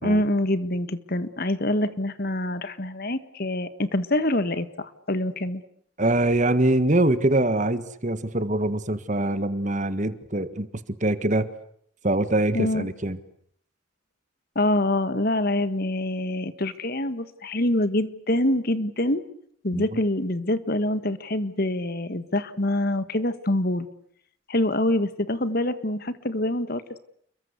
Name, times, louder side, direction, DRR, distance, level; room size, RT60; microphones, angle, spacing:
voice 1, 0.0-5.6 12.5-12.9 14.5-19.2 19.6-23.9 24.5-26.8, left 1 dB, 45° left, 13 dB, 1.7 m, -25 dB
voice 2, 6.0-10.7 11.0-11.5 12.0-13.2 19.7-19.8, right 1 dB, 35° right, 13 dB, 1.6 m, -23 dB
29.5 x 22.5 x 8.3 m, 0.67 s
head